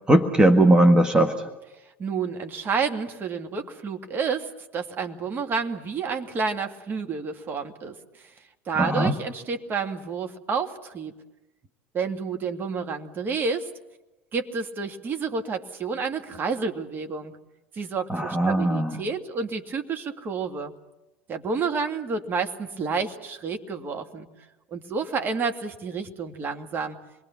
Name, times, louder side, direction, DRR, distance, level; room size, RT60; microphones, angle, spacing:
voice 1, 0.1-1.5 8.8-9.1 18.1-19.0, right 1 dB, 15° right, 6 dB, 1.5 m, -19 dB
voice 2, 2.0-8.3 8.7-11.1 11.9-13.7 14.3-17.4 17.7-20.7 21.3-24.3 24.7-27.0, right 5 dB, 35° right, 5 dB, 2.2 m, -30 dB
27.5 x 22.0 x 7.2 m, 1.0 s
figure-of-eight pair, 75°, 6 cm